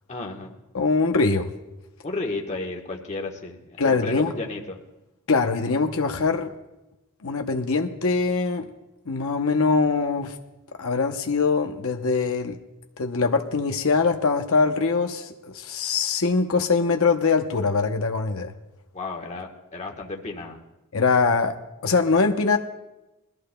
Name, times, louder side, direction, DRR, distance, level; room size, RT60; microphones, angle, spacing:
voice 1, 0.1-0.5 2.0-4.8 18.9-20.6, left 3 dB, 30° left, 0 dB, 1.3 m, -33 dB
voice 2, 0.7-1.5 3.8-4.3 5.3-6.5 7.2-8.7 9.1-10.4 10.8-12.6 13.0-18.5 20.9-21.6 21.8-22.6, left 4 dB, 65° left, 4 dB, 0.8 m, -22 dB
21.5 x 14.0 x 2.2 m, 0.98 s
head